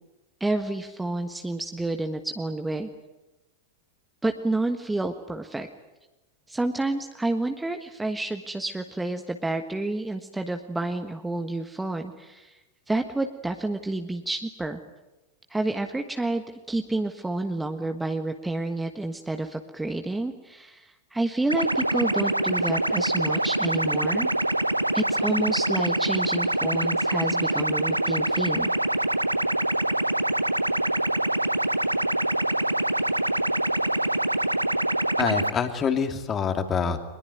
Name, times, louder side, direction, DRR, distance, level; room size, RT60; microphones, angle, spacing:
voice 1, 0.4-2.9 4.2-5.7 6.5-12.6 12.9-14.8 15.5-24.3 24.9-28.7, right 2 dB, 5° right, 6 dB, 1.4 m, -29 dB
sound 1, 21.5-35.5, right 1 dB, 85° right, 0.9 m, -25 dB
voice 2, 35.2-37.0, left 6 dB, 25° left, 7 dB, 2.7 m, -26 dB
23.5 x 21.5 x 9.5 m, 1.0 s
figure-of-eight pair, 90°, 0 cm